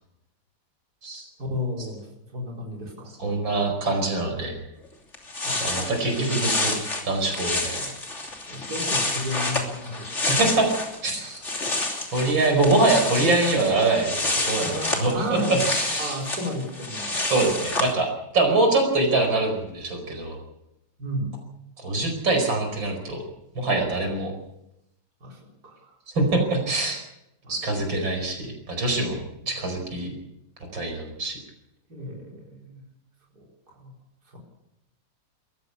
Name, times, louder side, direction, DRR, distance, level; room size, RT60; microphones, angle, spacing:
voice 1, 1.4-2.1 2.3-3.1 5.4-6.3 7.2-7.4 8.5-10.3 11.2-11.4 14.6-17.3 21.0-21.4 25.2-26.0 27.4-27.8 29.5-29.6 31.9-32.8 33.3-33.9 34.3-34.4, left 1 dB, 55° right, -1 dB, 4.8 m, -34 dB
voice 2, 3.2-4.6 5.6-6.7 7.0-7.8 10.2-10.7 11.0-11.5 12.1-16.2 17.2-20.4 21.8-23.2 23.6-24.3 26.1-27.0 27.5-29.2 29.5-30.1 30.7-31.4, right 2 dB, 85° right, 3 dB, 5.6 m, -24 dB
sound 1, 4.8-4.9 5.1-11.0 11.3-17.9, left 2 dB, 35° left, 3.4 m, -28 dB
22.0 x 15.0 x 8.3 m, 0.85 s
omnidirectional pair, 2.0 m